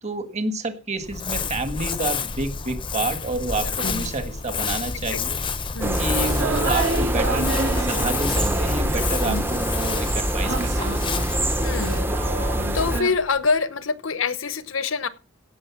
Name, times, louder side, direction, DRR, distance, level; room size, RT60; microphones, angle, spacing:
voice 1, 0.0-5.4 5.8-10.8, right 2 dB, 35° right, 8 dB, 1.6 m, -29 dB
Crumpling crinkling, 1.0-13.5, left 5 dB, 25° left, 0.7 m, -30 dB
voice 2, 5.7-6.0 9.2-9.4 11.6-12.0 12.4-15.1, left 4 dB, 75° left, 14 dB, 1.0 m, -26 dB
sound 1, 5.8-13.0, right 1 dB, 10° right, 0.8 m, -25 dB
sound 2, 6.2-9.6 10.4-13.1, right 3 dB, 70° right, 2.9 m, -30 dB
16.5 x 6.6 x 5.9 m, 0.36 s
head